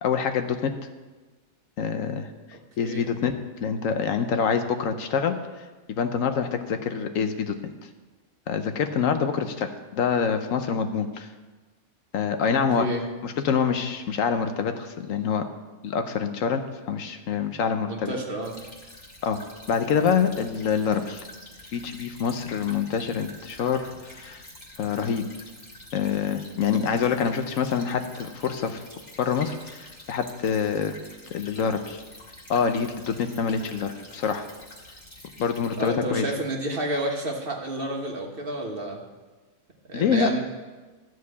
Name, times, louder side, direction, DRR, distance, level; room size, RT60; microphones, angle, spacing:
voice 1, 0.0-0.7 1.8-2.3 2.8-5.4 6.0-7.6 8.5-11.3 12.1-12.9 13.2-15.4 15.8-18.1 19.2-19.4 19.7-21.2 21.7-24.4 24.8-25.3 25.9-28.8 29.2-31.0 31.3-32.0 32.5-34.4 35.4-36.3 39.9-40.3, left 6 dB, 75° left, 7 dB, 1.1 m, -26 dB
voice 2, 17.9-18.5 35.8-39.0 39.9-40.4, right 1 dB, 45° right, 1 dB, 1.5 m, -30 dB
Stream / Trickle dribble, 18.4-35.9, left 1 dB, 20° left, 1.7 m, -47 dB
13.0 x 4.7 x 8.2 m, 1.3 s
omnidirectional pair, 1.4 m